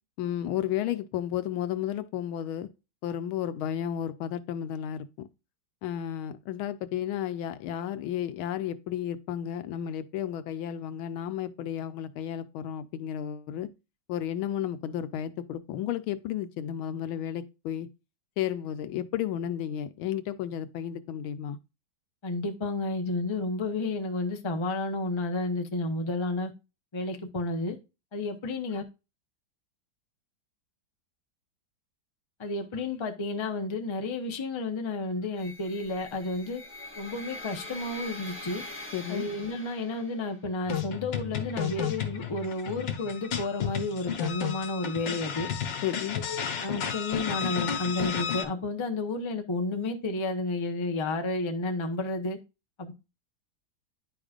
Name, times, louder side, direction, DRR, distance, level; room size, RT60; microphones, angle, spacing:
voice 1, 0.2-2.7 3.0-5.3 5.8-13.7 14.1-17.9 18.4-21.6 38.9-39.3 45.8-46.2, left 10 dB, 90° left, 1.5 m, -33 dB
voice 2, 22.2-26.5 26.9-27.8 28.1-28.8 32.4-36.6 37.0-38.6 39.1-45.5 46.1-52.4 52.8-52.9, left 2 dB, 40° left, 0.4 m, -31 dB
sound 1, 35.4-40.4, left 1 dB, 5° left, 1.1 m, -43 dB
sound 2, 40.7-48.4, left 8 dB, 70° left, 1.7 m, -32 dB
10.0 x 5.0 x 2.4 m
omnidirectional pair, 2.2 m